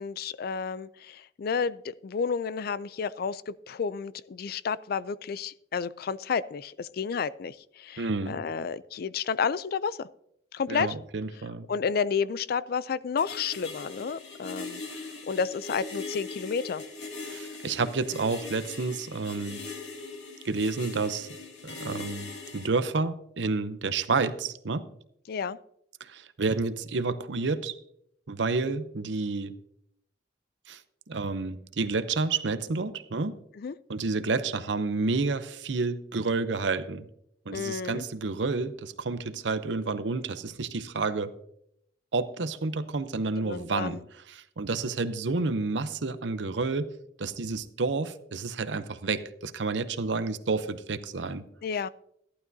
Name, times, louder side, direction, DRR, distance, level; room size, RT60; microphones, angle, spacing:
voice 1, 0.0-10.1 10.5-10.9 11.7-16.8 25.3-25.6 33.6-33.7 37.5-38.0 43.4-44.0 51.6-51.9, left 6 dB, 55° left, 17 dB, 0.4 m, -31 dB
voice 2, 8.0-8.4 10.7-11.7 17.3-19.6 20.4-21.3 21.6-24.9 26.0-27.8 28.3-29.6 30.7-30.8 31.1-33.4 33.9-37.1 37.5-41.4 42.1-44.0 44.3-51.4, right 3 dB, 75° right, 12 dB, 0.7 m, -30 dB
sound 1, 13.2-22.7, left 3 dB, 75° left, 2.5 m, -40 dB
14.5 x 11.5 x 2.7 m, 0.73 s
head